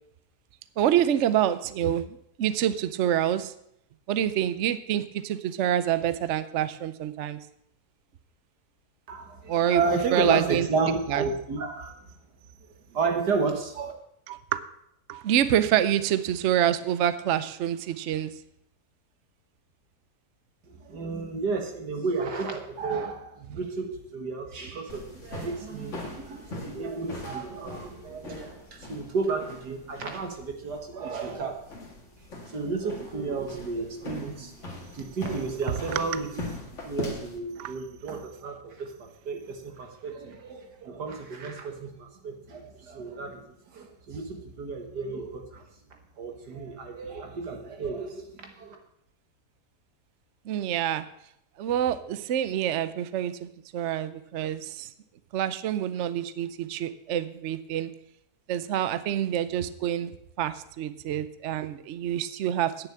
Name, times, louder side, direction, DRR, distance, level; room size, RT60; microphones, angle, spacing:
voice 1, 0.8-3.5 4.1-7.4 9.5-10.7 11.1-11.2 14.3-14.6 15.1-18.3 37.6-37.7 50.5-51.0 51.6-54.9 55.3-57.9 58.5-60.1 60.4-62.9, right 10 dB, 60° right, 13 dB, 0.7 m, -27 dB
voice 2, 9.1-12.2 12.9-13.9 20.8-31.6 32.4-34.7 34.9-36.3 36.8-45.6 46.2-48.8, right 4 dB, 80° right, 4 dB, 2.2 m, -32 dB
Walking away and returning boots on hardwood floor, 24.9-37.4, left 2 dB, 45° left, 2.3 m, -41 dB
9.1 x 7.1 x 8.5 m, 0.75 s
omnidirectional pair, 1.8 m